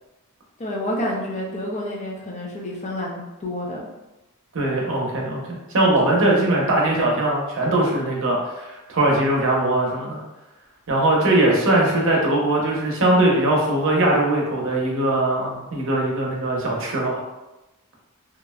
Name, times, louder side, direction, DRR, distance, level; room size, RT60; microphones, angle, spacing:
voice 1, 0.6-3.9, left 1 dB, 30° left, -2 dB, 0.5 m, -29 dB
voice 2, 4.5-10.2 10.9-17.2, right 1 dB, 60° right, -2 dB, 0.7 m, -20 dB
3.0 x 2.4 x 2.2 m, 1.0 s
head